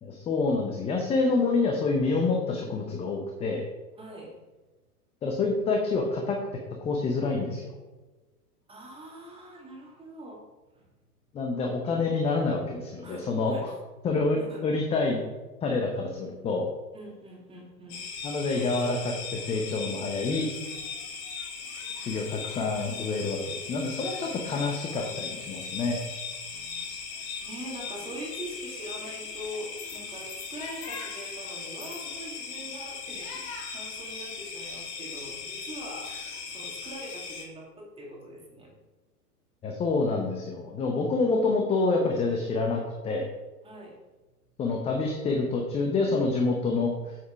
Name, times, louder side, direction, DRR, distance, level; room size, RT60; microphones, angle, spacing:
voice 1, 0.0-3.6 5.2-6.4 6.8-7.7 11.3-13.7 14.0-15.2 15.6-16.7 18.2-20.5 22.1-26.0 39.6-43.3 44.6-47.2, left 3 dB, 15° left, 2 dB, 0.8 m, -27 dB
voice 2, 4.0-4.3 8.7-10.4 10.7-10.8 13.0-13.7 14.3-14.6 16.9-18.0 26.4-26.9 27.4-36.1 36.4-38.7 43.6-43.9, right 1 dB, 10° right, -2 dB, 2.3 m, -43 dB
sound 1, 17.9-37.4, left 5 dB, 35° left, 2.1 m, -38 dB
8.1 x 7.6 x 4.6 m, 1.2 s
figure-of-eight pair, 105°, 47 cm